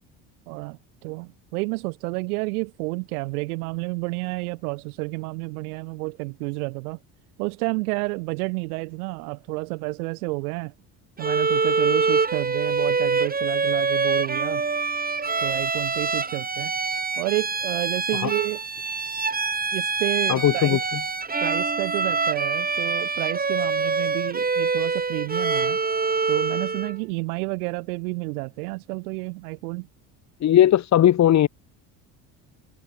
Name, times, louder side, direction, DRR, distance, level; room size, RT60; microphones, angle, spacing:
voice 1, 0.5-7.0 7.4-10.7 11.2-14.6 15.4-16.7 17.2-18.6 19.7-20.8 21.4-25.8 26.3-29.9, right 26 dB, 85° right, 2.5 m, -30 dB
Bowed string instrument, 11.2-27.0, right 4 dB, 20° right, 2.1 m, -25 dB
voice 2, 20.3-20.8 30.4-31.5, left 11 dB, 40° left, 0.9 m, -17 dB
supercardioid pair, 85°, 43 cm